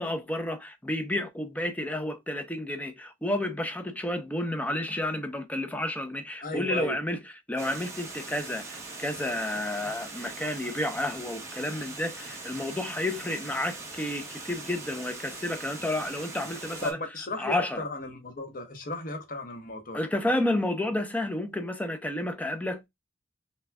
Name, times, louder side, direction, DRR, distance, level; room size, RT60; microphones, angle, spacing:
voice 1, 0.0-7.2 7.5-17.0 17.4-17.8 19.9-22.9, left 1 dB, 10° left, 0.5 m, -31 dB
voice 2, 6.4-7.0 16.8-20.0, left 1 dB, 55° left, 1.0 m, -35 dB
Water, 7.6-16.9, right 3 dB, 15° right, 1.0 m, -41 dB
5.8 x 2.3 x 2.2 m
head